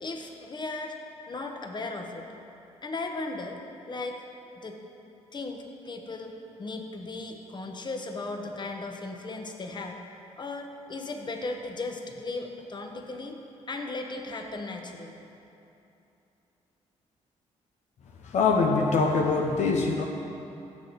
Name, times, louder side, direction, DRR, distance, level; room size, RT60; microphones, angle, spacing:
voice 1, 0.0-1.0 1.3-2.3 2.8-3.6 3.8-4.2 4.6-4.8 5.3-10.0 10.4-13.4 13.7-15.2, left 3 dB, 35° left, 3 dB, 1.1 m, -36 dB
voice 2, 18.2-20.1, left 4 dB, 70° left, 1 dB, 0.9 m, -23 dB
14.5 x 6.8 x 4.0 m, 2.8 s
cardioid pair, 65°, 12 cm